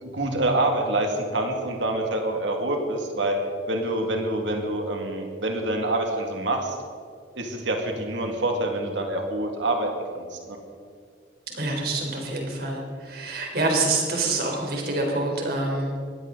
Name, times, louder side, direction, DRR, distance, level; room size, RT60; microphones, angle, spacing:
voice 1, 0.0-3.4 3.7-6.8 7.4-9.9 10.1-10.6, right 1 dB, 75° right, 2 dB, 2.1 m, -26 dB
voice 2, 11.5-16.0, right 2 dB, 50° right, 0 dB, 3.9 m, -26 dB
21.5 x 15.5 x 3.9 m, 2.2 s
head